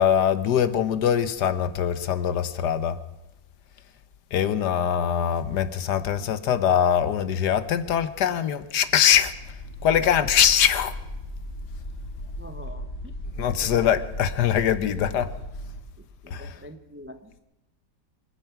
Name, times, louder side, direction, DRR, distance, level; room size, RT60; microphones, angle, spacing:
voice 1, 0.0-3.0 4.3-9.3 9.8-10.9 13.4-15.3 16.3-16.6, left 9 dB, 70° left, 1.4 m, -22 dB
sound 1, 9.1-15.8, equal, 90° left, 3.4 m, -37 dB
voice 2, 12.4-13.1 13.5-13.9 16.2-17.3, equal, 15° right, 0.4 m, -44 dB
25.5 x 9.2 x 5.9 m
omnidirectional pair, 2.0 m